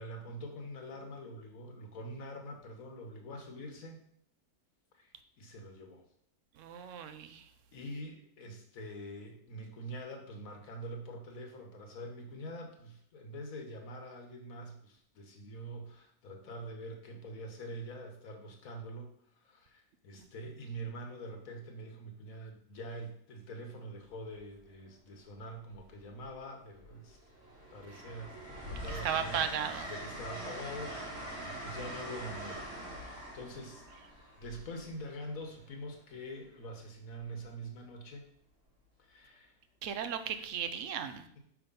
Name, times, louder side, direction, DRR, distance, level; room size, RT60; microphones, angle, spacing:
voice 1, 0.0-4.0 4.9-5.1 5.4-6.0 6.7-7.1 7.7-27.2 27.7-28.4 28.6-32.6 33.0-33.9 34.4-38.3 39.0-39.6, equal, 65° left, 3 dB, 1.5 m, -45 dB
voice 2, 6.6-7.4 29.0-29.9 39.8-41.3, right 8 dB, 65° right, 10 dB, 0.8 m, -35 dB
Train, 24.2-24.4 25.7-26.4 26.8-35.6 37.2-37.4, right 1 dB, 45° right, 1.7 m, -44 dB
5.7 x 3.6 x 5.3 m, 0.66 s
omnidirectional pair, 1.7 m